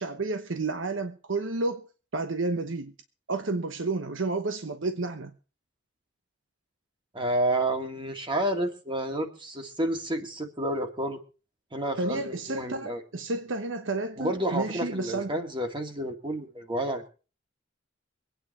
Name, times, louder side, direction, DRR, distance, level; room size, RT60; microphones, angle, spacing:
voice 1, 0.0-1.8 2.1-2.9 3.3-5.3 12.0-15.3, right 3 dB, 80° right, 1.1 m, -31 dB
voice 2, 7.1-11.2 11.7-13.0 14.2-17.1, right 1 dB, 25° right, 2.2 m, -30 dB
24.0 x 9.2 x 4.3 m
head